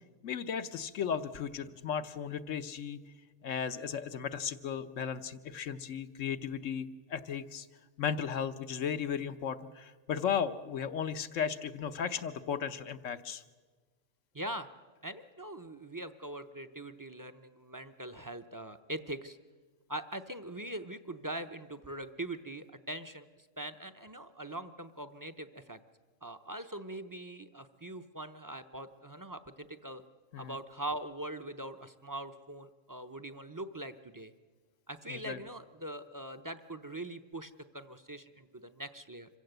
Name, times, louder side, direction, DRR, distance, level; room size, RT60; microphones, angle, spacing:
voice 1, 0.2-3.0 3.4-7.7 8.0-13.4 30.3-30.6 35.1-35.4, left 7 dB, 80° left, 11 dB, 1.2 m, -35 dB
voice 2, 14.3-14.7 15.0-19.4 19.9-25.8 26.2-30.0 30.4-34.3 34.9-39.3, right 1 dB, 20° right, 9 dB, 0.5 m, -42 dB
26.0 x 15.5 x 7.9 m, 1.4 s
omnidirectional pair, 1.3 m